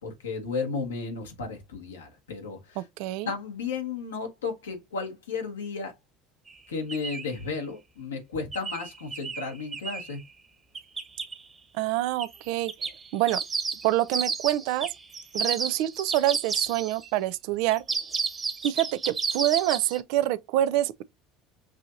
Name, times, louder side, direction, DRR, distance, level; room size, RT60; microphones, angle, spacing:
voice 1, 0.0-2.9 3.2-5.9 6.7-10.2, left 4 dB, 90° left, 1.2 m, -34 dB
voice 2, 2.8-3.3 11.7-13.4 13.8-14.9 15.3-17.8 18.6-21.0, right 14 dB, 70° right, 0.4 m, -26 dB
sound 1, 6.5-6.6 6.9-7.3 8.5-10.2 10.8-11.3 12.2-12.4 12.7-17.1 17.7-20.0, right 5 dB, 25° right, 1.2 m, -31 dB
6.1 x 2.8 x 2.5 m
hypercardioid pair, 75°, 0 cm